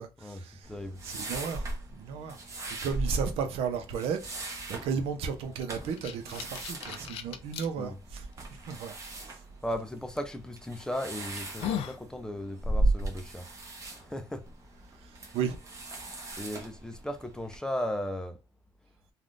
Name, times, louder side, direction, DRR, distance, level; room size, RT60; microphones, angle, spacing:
voice 1, 0.0-0.7 1.0-1.7 1.9-2.4 2.7-8.2 8.6-8.9 15.3-15.6, right 6 dB, 85° right, 0.6 m, -34 dB
sound 1, 0.6-17.6, right 2 dB, 30° right, 0.9 m, -37 dB
voice 2, 0.7-1.0 7.8-8.0 9.6-13.5 14.0-14.5 16.4-18.4, left 1 dB, 5° left, 0.4 m, -36 dB
sound 2, 5.6-7.7 8.3-8.4 10.2-10.4 10.9-11.0 11.4-12.0, left 9 dB, 80° left, 0.4 m, -36 dB
3.4 x 2.3 x 2.5 m
cardioid pair, 130°, 10 cm